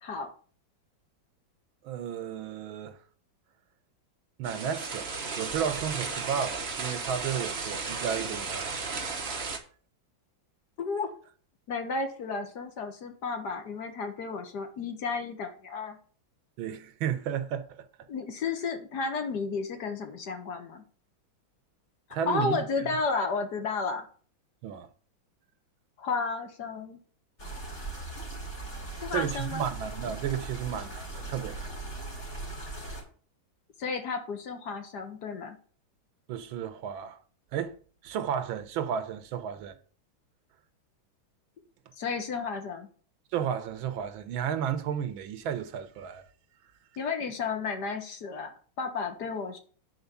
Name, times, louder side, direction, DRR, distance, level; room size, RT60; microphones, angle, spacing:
voice 1, 1.8-3.0 4.4-8.7 16.6-17.9 22.1-22.9 24.6-24.9 29.1-31.7 36.3-37.2 37.5-37.8 38.0-39.8 43.3-46.2, right 8 dB, 80° right, 1.7 m, -33 dB
sound 1, 4.4-9.6, right 4 dB, 35° right, 1.2 m, -34 dB
voice 2, 10.8-11.1 11.7-16.0 18.1-20.8 22.3-24.1 26.0-27.0 29.0-29.7 33.8-35.6 42.0-42.9 47.0-49.6, left 4 dB, 55° left, 1.9 m, -32 dB
sound 2, 27.4-33.0, right 2 dB, 35° left, 2.9 m, -39 dB
9.3 x 4.4 x 6.9 m
omnidirectional pair, 2.2 m